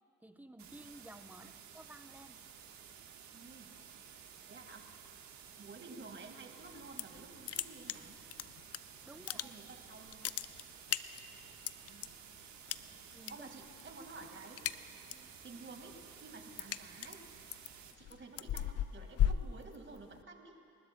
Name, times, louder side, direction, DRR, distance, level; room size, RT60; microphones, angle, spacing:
voice 1, 0.2-2.4 9.0-9.5 13.1-13.5, right 1 dB, 5° right, 8 dB, 0.8 m, -54 dB
sound 1, 0.6-17.9, right 8 dB, 70° right, 1.4 m, -54 dB
voice 2, 3.3-3.8 4.5-4.9 5.6-8.2 9.1-10.3 11.9-12.1 12.8-14.6 15.1-17.2 18.0-20.6, right 3 dB, 40° right, 4 dB, 1.9 m, -52 dB
sound 2, 6.7-7.2 7.5-8.8 9.1-9.8 10.1-12.1 12.7-13.3 13.6-14.0 14.3-15.3 15.7-20.2, left 11 dB, 55° left, 0.5 m, -36 dB
28.5 x 13.0 x 2.2 m, 2.5 s
supercardioid pair, 55°, 30 cm